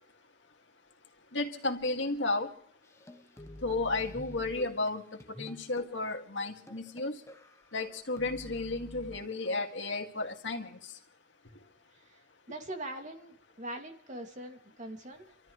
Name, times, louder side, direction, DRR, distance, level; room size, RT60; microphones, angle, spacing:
voice 1, 1.3-2.5 3.6-7.2 7.7-10.8, left 2 dB, 75° left, 3 dB, 2.2 m, -33 dB
sound 1, 2.8-9.2, left 1 dB, 15° left, 1.0 m, -49 dB
voice 2, 11.9-15.3, right 1 dB, 40° right, 3 dB, 2.6 m, -43 dB
30.0 x 13.5 x 3.2 m, 0.64 s
head